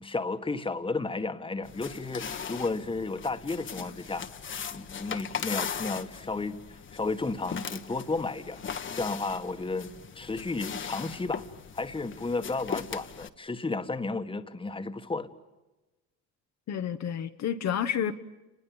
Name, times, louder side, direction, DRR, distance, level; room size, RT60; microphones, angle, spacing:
voice 1, 0.0-4.2 4.7-8.6 8.9-11.5 11.7-15.3, left 3 dB, 15° left, 1.6 m, -33 dB
sound 1, 1.6-13.3, left 7 dB, 35° left, 1.4 m, -39 dB
voice 2, 16.7-18.1, left 9 dB, 55° left, 1.3 m, -30 dB
29.5 x 21.0 x 9.0 m
cardioid pair, 100°, 33 cm